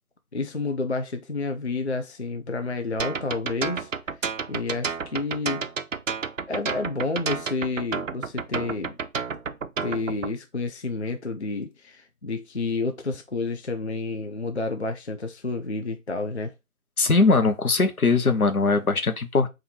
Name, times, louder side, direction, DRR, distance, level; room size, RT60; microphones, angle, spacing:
voice 1, 0.3-3.9 4.5-5.6 6.5-9.0 9.8-16.5, left 3 dB, 50° left, 0.4 m, -30 dB
sound 1, 3.0-10.3, right 5 dB, 60° right, 0.5 m, -30 dB
voice 2, 17.0-19.5, left 3 dB, 75° left, 0.9 m, -20 dB
4.3 x 2.6 x 4.2 m
figure-of-eight pair, 165°, 44 cm